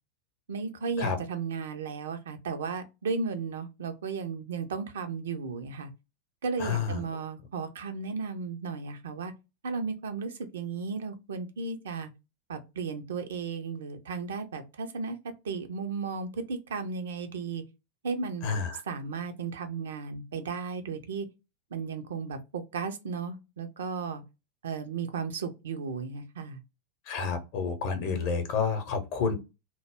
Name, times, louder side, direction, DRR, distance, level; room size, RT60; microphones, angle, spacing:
voice 1, 0.5-5.9 6.4-9.3 9.6-12.1 12.5-15.2 15.4-17.6 18.0-18.5 18.9-21.3 21.7-24.2 24.6-26.6, right 5 dB, 65° right, 0.4 m, -35 dB
voice 2, 6.6-7.0 18.4-18.8 27.1-29.3, left 5 dB, 45° left, 0.7 m, -29 dB
2.1 x 2.0 x 3.2 m
figure-of-eight pair, 90°, 0 cm